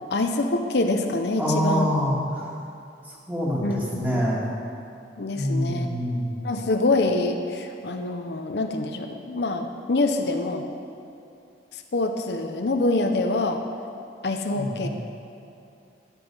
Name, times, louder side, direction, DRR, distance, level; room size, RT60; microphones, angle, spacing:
voice 1, 0.1-1.9 3.6-4.2 5.2-5.9 6.4-10.7 11.7-13.6 14.2-14.9, left 2 dB, 65° left, 4 dB, 0.7 m, -25 dB
voice 2, 1.4-2.5 3.0-4.5 5.3-6.4 14.5-14.9, equal, 10° right, -6 dB, 2.4 m, -26 dB
12.5 x 10.0 x 5.4 m, 2.6 s
head